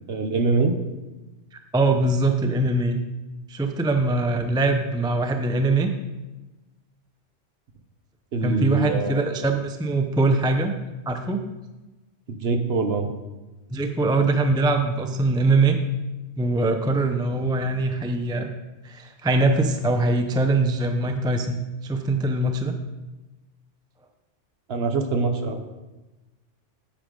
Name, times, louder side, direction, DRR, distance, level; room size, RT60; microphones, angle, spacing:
voice 1, 0.1-0.8 8.3-9.3 12.3-13.1 24.7-25.6, right 3 dB, 55° right, 6 dB, 1.0 m, -24 dB
voice 2, 1.7-3.0 3.5-5.9 8.4-10.7 11.1-11.4 13.7-15.8 16.4-18.5 18.8-22.7, right 2 dB, 5° right, 6 dB, 0.4 m, -22 dB
9.9 x 8.9 x 3.8 m, 1.1 s
omnidirectional pair, 1.3 m